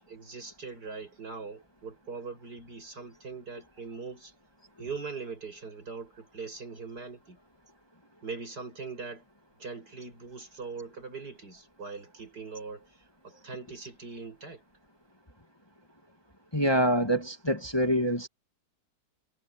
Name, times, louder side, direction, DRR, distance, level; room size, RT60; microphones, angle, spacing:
voice 1, 0.0-4.3 4.8-7.4 8.2-9.2 9.6-14.6, right 4 dB, 65° right, 6.7 m, -41 dB
voice 2, 16.5-18.3, equal, 15° left, 2.4 m, -25 dB
omnidirectional pair, 1.8 m